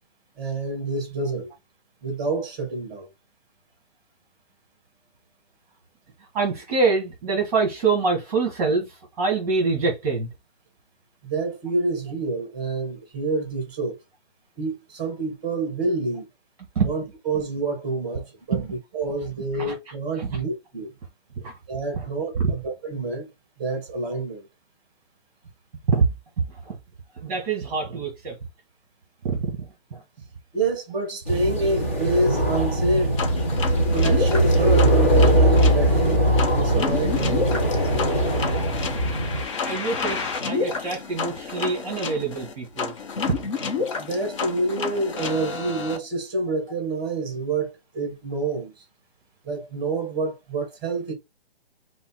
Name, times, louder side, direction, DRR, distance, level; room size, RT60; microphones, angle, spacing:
voice 1, 0.4-1.5 2.0-3.1 11.2-14.0 14.6-16.3 16.8-20.9 21.7-23.3 23.6-24.5 30.5-33.2 33.9-37.7 44.0-48.8 49.4-51.1, right 3 dB, 15° right, 2.0 m, -27 dB
voice 2, 6.3-8.9 9.2-10.3 16.7-16.9 18.5-18.6 21.4-21.5 22.4-22.5 25.9-26.0 26.7-26.8 27.2-28.4 39.7-42.9, right 4 dB, 35° right, 1.5 m, -24 dB
sound 1, 31.3-39.4, right 1 dB, 15° left, 0.4 m, -21 dB
sound 2, 33.2-46.0, left 5 dB, 30° left, 0.8 m, -30 dB
5.3 x 2.1 x 4.5 m
hypercardioid pair, 160°, 32 cm